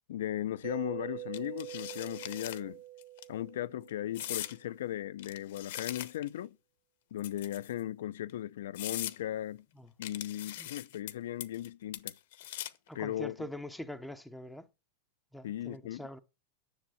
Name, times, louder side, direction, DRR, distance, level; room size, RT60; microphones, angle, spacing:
voice 1, 0.1-2.8 3.3-6.6 7.1-9.6 10.0-12.1 12.9-13.3 15.4-16.0, left 12 dB, 75° left, 0.6 m, -37 dB
Mallet percussion, 0.6-4.4, right 15 dB, 45° right, 1.3 m, -45 dB
sound 1, 1.3-2.6 3.0-3.2 4.1-4.6 5.2-6.4 7.2-7.8 8.3-8.4 8.7-9.2 10.0-11.1 11.4-11.7 11.9-12.9, left 13 dB, 60° left, 1.0 m, -40 dB
voice 2, 12.9-14.7 15.3-16.2, left 1 dB, ahead, 0.6 m, -43 dB
10.0 x 7.3 x 7.6 m
supercardioid pair, 170°, 0 cm